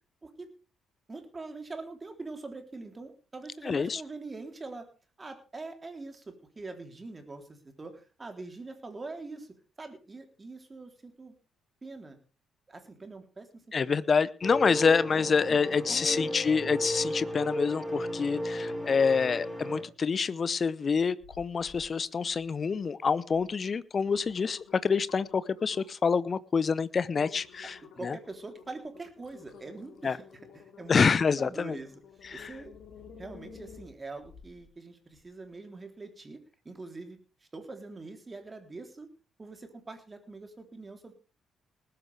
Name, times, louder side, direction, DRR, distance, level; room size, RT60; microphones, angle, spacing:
voice 1, 1.1-4.9 5.2-9.5 9.8-11.3 11.8-12.2 12.7-14.0 14.6-14.8 15.1-16.3 27.9-30.2 30.5-31.0 31.4-31.9 32.3-32.7 33.2-36.4 36.6-37.2 37.5-39.1 39.4-41.1, right 3 dB, 25° right, 5 dB, 3.5 m, -43 dB
voice 2, 3.6-4.0 13.7-28.2 30.0-30.2 30.9-31.8 32.3-32.5, left 5 dB, 35° left, 18 dB, 0.8 m, -27 dB
sound 1, 14.4-19.8, equal, ahead, 3.7 m, -34 dB
sound 2, 21.2-21.9 22.2-22.7 23.3-23.4 23.8-26.1 26.6-26.7 27.1-34.6 35.1-35.2, left 6 dB, 55° left, 2.5 m, -52 dB
20.0 x 12.0 x 3.5 m, 0.34 s
figure-of-eight pair, 45°, 0 cm